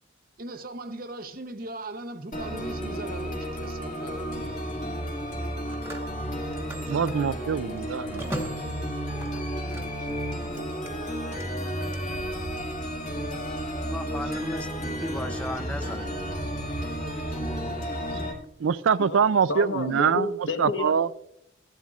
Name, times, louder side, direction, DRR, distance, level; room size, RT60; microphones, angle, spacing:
voice 1, 0.4-4.3, right 2 dB, 45° right, 0.8 m, -39 dB
sound 1, 2.3-18.3, equal, 40° left, 2.0 m, -32 dB
Telephone, 5.3-10.1 10.4-12.0, right 1 dB, 15° right, 1.2 m, -41 dB
voice 2, 6.9-8.3 18.6-20.3 20.6-21.1, right 6 dB, 80° right, 0.4 m, -24 dB
voice 3, 13.9-16.4, left 1 dB, 5° left, 0.5 m, -36 dB
voice 4, 19.0-21.1, left 2 dB, 65° left, 1.0 m, -31 dB
14.0 x 11.5 x 2.4 m
head